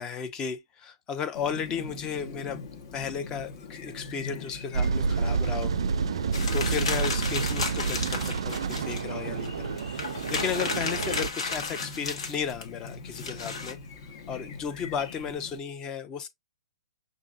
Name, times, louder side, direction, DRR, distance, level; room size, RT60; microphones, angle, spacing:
voice 1, 0.0-5.7 6.5-13.8 14.3-16.3, left 7 dB, 20° left, 0.7 m, -34 dB
Chirp tweet, 1.3-15.6, left 4 dB, 45° left, 1.1 m, -42 dB
sound 1, 4.7-11.3, right 5 dB, 65° right, 0.4 m, -29 dB
sound 2, 6.3-9.0 9.5-9.6 9.8-13.7, left 4 dB, 65° left, 1.3 m, -33 dB
5.9 x 2.6 x 2.4 m
figure-of-eight pair, 120°, 3 cm